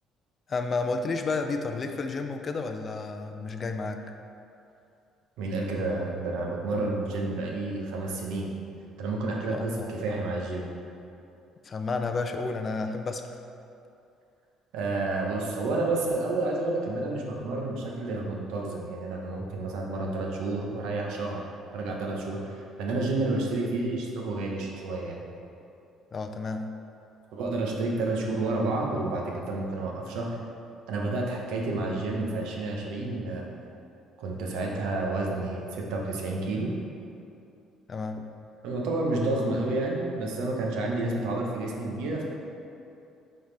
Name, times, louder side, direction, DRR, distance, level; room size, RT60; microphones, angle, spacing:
voice 1, 0.5-4.0 9.5-9.9 11.6-13.4 26.1-26.7 37.9-38.3, left 3 dB, 30° left, 6 dB, 0.4 m, -31 dB
voice 2, 5.4-8.5 9.0-10.7 14.7-21.4 21.7-25.3 27.3-30.4 30.9-33.5 34.2-36.7 38.6-42.3, right 2 dB, 85° right, -1 dB, 1.0 m, -30 dB
9.0 x 3.9 x 3.4 m, 2.7 s
cardioid pair, 150°, 0 cm